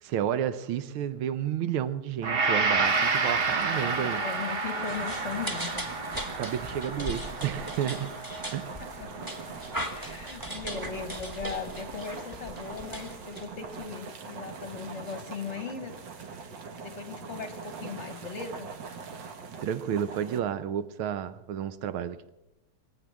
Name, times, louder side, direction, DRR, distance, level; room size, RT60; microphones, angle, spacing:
voice 1, 0.0-4.2 6.4-8.1 8.5-8.7 19.6-22.3, right 9 dB, 90° right, 1.6 m, -31 dB
Gong, 2.2-10.5 11.0-11.2, right 4 dB, 40° right, 0.9 m, -30 dB
sound 1, 2.8-20.4, right 5 dB, 65° right, 1.9 m, -43 dB
voice 2, 3.6-5.9 8.8-9.5 9.9-16.0 16.7-18.7, left 5 dB, 45° left, 1.0 m, -39 dB
sound 2, 4.8-13.9, equal, 10° right, 1.2 m, -39 dB
22.5 x 8.7 x 7.4 m
omnidirectional pair, 2.3 m